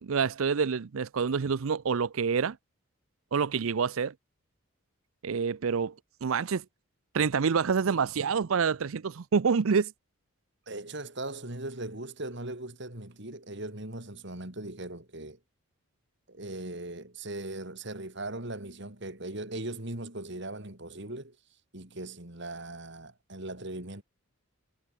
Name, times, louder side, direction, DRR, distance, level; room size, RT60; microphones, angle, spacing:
voice 1, 0.0-2.6 3.3-4.1 5.2-5.9 6.2-6.6 7.1-9.9, right 6 dB, 75° right, 0.5 m, -27 dB
voice 2, 10.7-15.4 16.3-21.3 21.7-24.0, right 2 dB, 55° right, 3.4 m, -39 dB
head